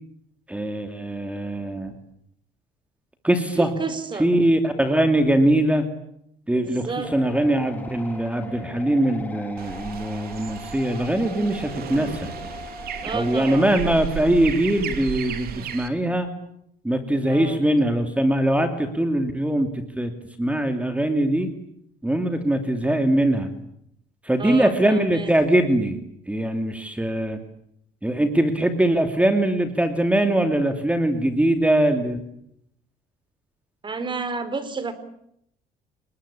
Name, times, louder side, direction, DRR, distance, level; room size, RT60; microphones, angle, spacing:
voice 1, 0.5-1.9 3.2-3.7 4.2-5.9 6.5-12.3 13.1-16.3 16.8-20.1 20.4-21.5 22.0-23.5 24.2-26.0 26.3-27.4 28.0-32.2, right 1 dB, 10° right, 7 dB, 2.7 m, -22 dB
voice 2, 3.6-4.3 6.5-7.1 13.0-13.7 17.3-17.6 24.4-25.3 33.8-34.9, right 4 dB, 30° right, 12 dB, 4.0 m, -30 dB
sound 1, 7.0-13.7, left 2 dB, 10° left, 4.2 m, -40 dB
sound 2, 9.6-15.9, right 8 dB, 65° right, 3.3 m, -34 dB
29.5 x 20.5 x 8.6 m, 0.75 s
cardioid pair, 110°, 17 cm